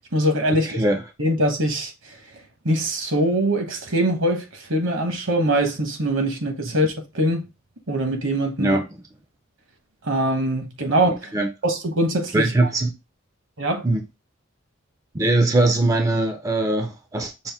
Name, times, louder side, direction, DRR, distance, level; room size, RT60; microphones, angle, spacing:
voice 1, 0.0-0.8 1.2-2.2 2.6-7.4 7.9-8.8 10.0-11.3 11.6-12.5 13.6-13.8, right 1 dB, 65° right, 1.1 m, -23 dB
voice 2, 0.6-1.0 8.6-8.9 11.3-11.5 12.3-13.0 13.8-14.0 15.1-17.5, right 2 dB, 15° right, 0.4 m, -21 dB
5.5 x 2.5 x 3.5 m
head